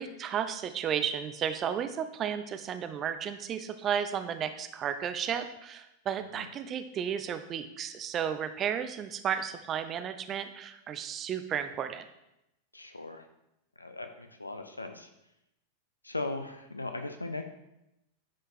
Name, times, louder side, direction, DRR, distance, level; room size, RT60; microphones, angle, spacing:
voice 1, 0.0-12.1, right 8 dB, 30° right, 9 dB, 0.7 m, -33 dB
voice 2, 12.7-13.3 13.8-15.1 16.0-17.4, left 2 dB, 85° left, 7 dB, 0.8 m, -38 dB
10.5 x 5.0 x 4.4 m, 0.87 s
figure-of-eight pair, 90°, 0 cm